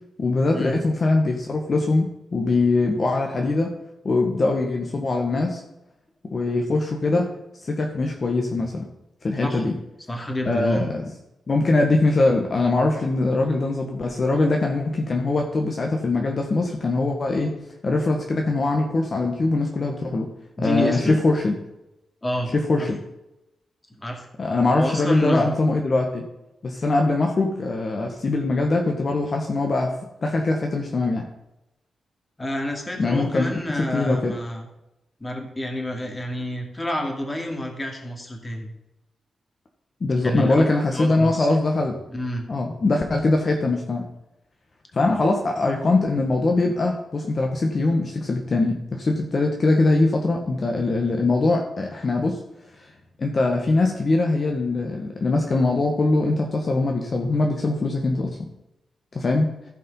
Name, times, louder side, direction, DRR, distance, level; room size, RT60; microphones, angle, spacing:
voice 1, 0.2-3.7 4.0-5.6 6.3-7.3 7.6-8.9 9.2-9.8 10.4-11.1 11.5-17.5 17.8-20.3 20.6-21.6 22.5-23.0 24.4-26.2 26.6-29.9 30.2-31.3 33.0-34.4 40.0-41.9 42.5-44.1 44.9-52.4 52.8-52.9 53.2-58.3 59.1-59.5, left 2 dB, 40° left, 2 dB, 1.4 m, -22 dB
voice 2, 10.1-10.9 20.6-21.2 22.2-22.5 22.8-22.9 24.0-24.3 24.8-25.5 32.4-34.7 35.2-38.7 40.2-40.6 40.9-41.5 42.1-42.5, equal, 15° left, 3 dB, 2.4 m, -29 dB
15.0 x 5.3 x 5.5 m, 0.91 s
cardioid pair, 100°, 0 cm